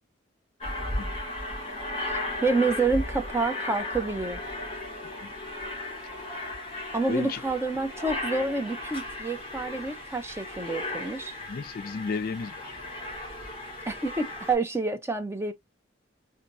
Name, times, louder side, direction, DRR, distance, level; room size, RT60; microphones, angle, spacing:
Aircraft, 0.6-14.5, left 2 dB, 30° left, 2.1 m, -36 dB
voice 1, 2.1-4.4 6.9-11.3 13.9-15.5, right 3 dB, 15° right, 0.5 m, -28 dB
voice 2, 7.1-7.4 11.5-12.8, left 5 dB, 50° left, 0.3 m, -33 dB
4.2 x 2.6 x 2.5 m
head